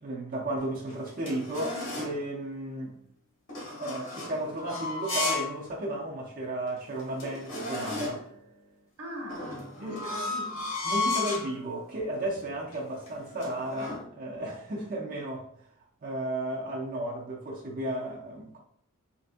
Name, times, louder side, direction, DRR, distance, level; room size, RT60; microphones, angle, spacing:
voice 1, 0.0-3.0 3.8-8.2 9.8-10.0 10.8-15.5 16.0-18.6, right 1 dB, 40° right, 0.5 m, -34 dB
sound 1, 0.6-2.2 3.5-5.6 6.0-6.1 6.7-6.8 7.0-8.3 9.3-11.5 12.2-12.4 12.7-14.0, left 3 dB, 60° left, 1.1 m, -34 dB
voice 2, 9.0-10.7, equal, 85° right, 0.9 m, -41 dB
3.3 x 2.6 x 2.5 m
head